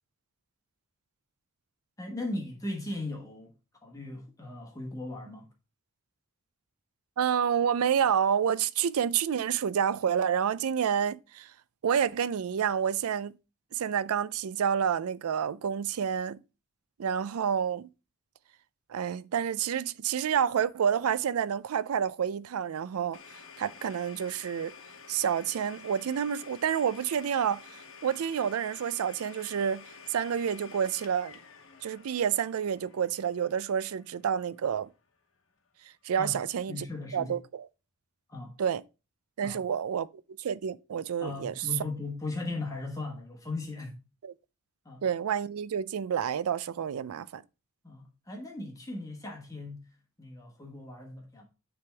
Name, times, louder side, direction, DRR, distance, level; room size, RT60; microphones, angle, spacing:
voice 1, 2.0-3.5 3.8-5.5 36.2-37.3 38.3-38.5 39.4-39.6 41.2-44.0 44.8-45.0 47.8-51.4, left 2 dB, 15° left, 1.2 m, -38 dB
voice 2, 7.2-11.5 11.8-13.4 13.7-16.4 17.0-17.9 18.9-23.2 23.6-24.7 25.1-27.6 28.0-29.8 30.1-31.4 31.8-34.9 36.0-36.8 37.1-37.7 38.6-38.8 39.4-40.1 40.4-41.5 44.2-44.3 45.0-47.4, right 8 dB, 85° right, 0.4 m, -29 dB
Domestic sounds home sounds, 23.1-34.8, left 5 dB, 65° left, 1.0 m, -51 dB
9.5 x 3.5 x 3.3 m
head